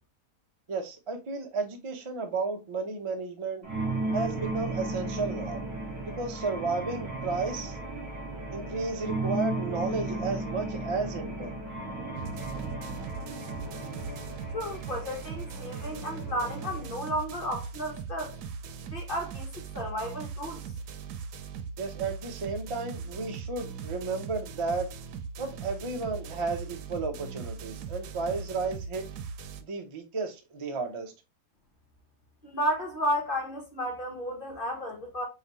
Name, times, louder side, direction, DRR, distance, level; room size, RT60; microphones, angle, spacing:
voice 1, 0.7-3.7 4.1-5.6 6.0-7.8 8.5-11.5 21.8-24.9 25.4-29.1 29.6-31.1, right 4 dB, 50° right, 0.3 m, -33 dB
sound 1, 3.6-16.9, right 2 dB, 65° right, 2.0 m, -35 dB
sound 2, 12.2-29.6, right 6 dB, 90° right, 1.1 m, -40 dB
voice 2, 14.5-18.4 18.9-20.6 32.4-35.3, equal, 40° left, 1.0 m, -33 dB
4.9 x 2.8 x 2.7 m
omnidirectional pair, 1.7 m